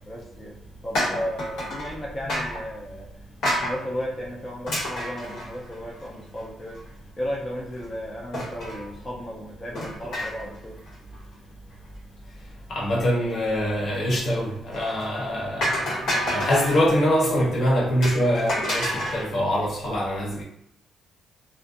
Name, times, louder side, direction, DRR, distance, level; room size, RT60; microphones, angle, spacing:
voice 1, 0.1-6.8 7.2-10.8, equal, 25° left, -4 dB, 0.5 m, -34 dB
Empty Energy Drink Can Drop, 0.9-1.9 2.3-2.7 3.4-3.8 4.7-6.0 6.4-6.5 6.8-6.9 8.3-8.8 9.8-10.6 10.9-11.2 14.7-15.0 15.6-16.8 18.0-19.3, equal, 80° left, 1.4 m, -28 dB
voice 2, 12.7-20.4, equal, 55° left, -4 dB, 0.9 m, -24 dB
2.5 x 2.3 x 2.5 m, 0.78 s
cardioid pair, 90°, 0 cm